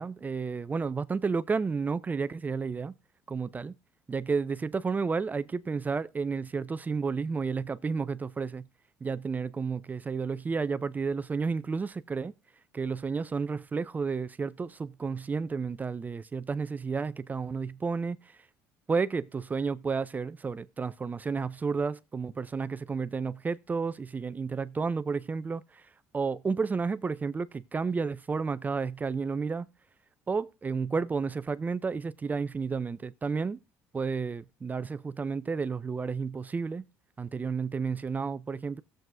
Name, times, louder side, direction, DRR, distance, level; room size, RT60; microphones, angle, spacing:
voice 1, 0.0-2.9 3.3-3.8 4.1-8.6 9.0-12.3 12.7-18.2 18.9-25.8 26.1-29.7 30.3-33.6 33.9-36.8 37.2-38.8, right 5 dB, 25° right, 0.5 m, -31 dB
17.0 x 7.7 x 2.6 m
supercardioid pair, 75°, 6 cm